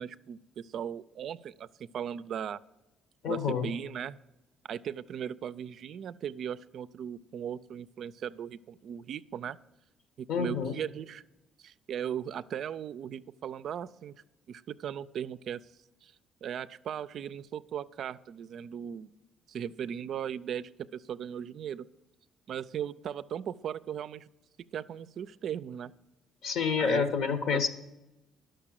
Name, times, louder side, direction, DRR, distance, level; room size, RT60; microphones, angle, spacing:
voice 1, 0.0-2.6 3.3-4.2 4.7-9.6 10.2-11.2 11.6-14.1 14.5-15.6 16.0-16.1 16.4-19.1 19.5-21.9 22.5-24.3 24.7-25.9 26.8-27.1 27.5-27.7, right 9 dB, 60° right, 15 dB, 0.4 m, -38 dB
voice 2, 3.2-3.7 10.3-10.7 26.4-27.7, left 6 dB, 70° left, 10 dB, 1.3 m, -28 dB
11.0 x 6.6 x 7.6 m, 0.98 s
cardioid pair, 105°, 0 cm